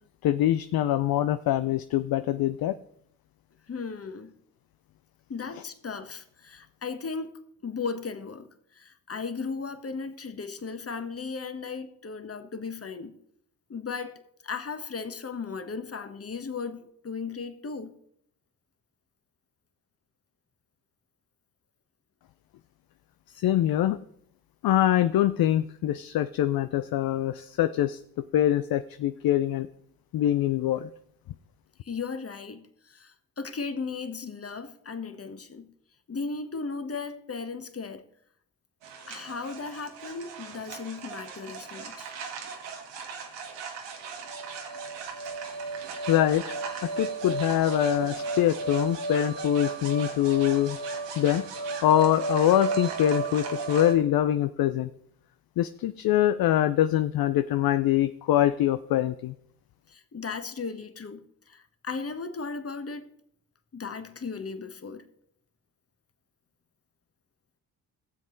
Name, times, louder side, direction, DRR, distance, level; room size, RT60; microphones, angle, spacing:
voice 1, 0.2-2.8 23.4-24.0 24.6-28.0 28.3-29.7 30.1-30.9 46.1-46.4 46.8-50.8 51.2-51.5 51.8-54.9 55.6-59.3, left 12 dB, 55° left, 0.6 m, -24 dB
voice 2, 3.7-4.3 5.3-7.3 7.6-13.2 13.7-14.2 14.4-17.9 31.8-35.7 36.1-38.0 39.1-42.1 59.9-63.1 63.7-65.1, left 4 dB, 35° left, 1.3 m, -36 dB
sound 1, 38.8-53.9, right 4 dB, 75° right, 1.7 m, -34 dB
16.0 x 7.4 x 3.9 m
hypercardioid pair, 45°, 43 cm